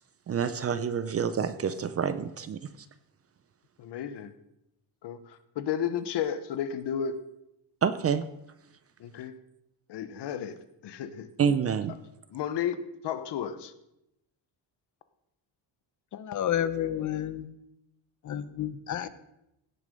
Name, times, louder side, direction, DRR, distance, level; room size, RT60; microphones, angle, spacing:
voice 1, 0.3-2.6 7.8-8.3 11.4-11.9, right 7 dB, 30° right, 12 dB, 0.5 m, -27 dB
voice 2, 3.8-4.3 5.0-7.2 9.0-9.3 9.9-11.3 11.9-12.0 12.3-13.7, left 8 dB, 60° left, 12 dB, 1.0 m, -33 dB
voice 3, 16.1-17.5 18.2-19.1, left 10 dB, 40° left, 13 dB, 0.7 m, -30 dB
17.0 x 6.5 x 5.2 m, 0.85 s
cardioid pair, 155°, 46 cm